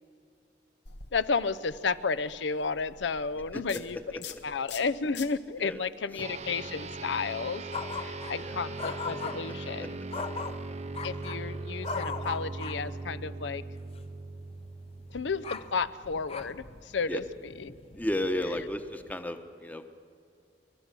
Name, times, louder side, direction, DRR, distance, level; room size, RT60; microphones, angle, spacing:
sound 1, 0.8-7.5, left 7 dB, 70° left, 1.2 m, -48 dB
voice 1, 1.1-7.6 7.9-10.0 11.0-13.6 15.1-17.7 18.4-18.5, left 4 dB, 85° left, 16 dB, 0.6 m, -32 dB
sound 2, 6.2-15.9, right 3 dB, 40° right, 0.7 m, -39 dB
sound 3, 7.7-8.5 8.8-9.5 10.1-11.5 11.8-13.0 13.9-14.1 14.4-19.1, left 4 dB, 35° left, 0.7 m, -40 dB
voice 2, 17.9-19.9, left 1 dB, 10° left, 8 dB, 0.9 m, -33 dB
29.0 x 12.0 x 7.5 m, 2.4 s
head